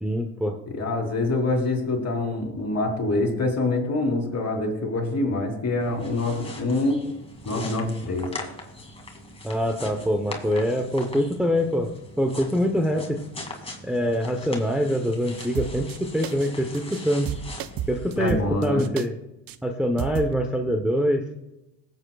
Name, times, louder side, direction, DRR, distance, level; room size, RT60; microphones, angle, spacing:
voice 1, 0.0-0.6 9.4-13.2 13.8-17.3 17.9-19.2 19.6-21.3, equal, ahead, 2 dB, 0.9 m, -24 dB
voice 2, 0.7-7.0 7.4-8.3 18.2-18.9, left 2 dB, 35° left, 2 dB, 3.3 m, -25 dB
sound 1, 5.8-18.2, left 2 dB, 15° left, 2.4 m, -40 dB
sound 2, 15.4-16.0 16.2-16.5 16.7-17.0 17.3-19.1 19.5-19.6 20.0-20.3, right 10 dB, 55° right, 0.7 m, -32 dB
19.5 x 8.1 x 2.4 m, 0.93 s
supercardioid pair, 75°, 42 cm